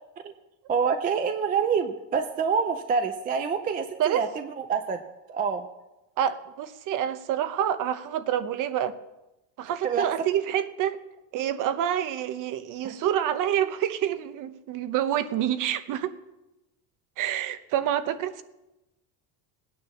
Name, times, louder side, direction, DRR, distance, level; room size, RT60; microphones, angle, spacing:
voice 1, 0.7-5.0 5.3-5.7 9.8-10.1 12.8-12.9, right 6 dB, 20° right, 7 dB, 0.4 m, -26 dB
voice 2, 6.2-9.0 9.6-11.0 11.3-16.1 17.2-18.4, right 10 dB, 40° right, 12 dB, 0.9 m, -27 dB
18.5 x 9.6 x 7.1 m, 0.97 s
cardioid pair, 175°, 48 cm